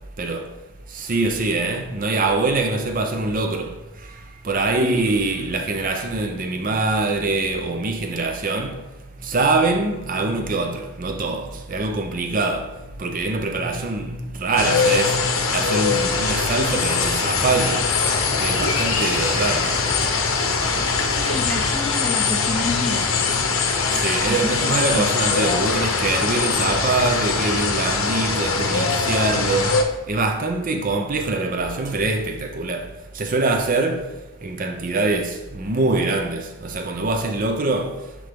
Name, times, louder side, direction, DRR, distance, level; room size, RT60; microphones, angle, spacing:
voice 1, 0.9-3.7 4.4-8.8 9.2-12.7 13.0-17.9 18.4-19.7 24.0-29.8 30.1-32.9 33.2-34.0 34.4-38.0, right 3 dB, 40° right, 0.7 m, -24 dB
sound 1, 14.6-29.8, left 4 dB, 65° left, 0.8 m, -22 dB
Idling, 16.6-21.7, left 1 dB, 20° left, 0.9 m, -32 dB
voice 2, 21.1-23.3 24.3-25.0, left 2 dB, 5° left, 0.5 m, -29 dB
9.7 x 3.3 x 3.5 m
head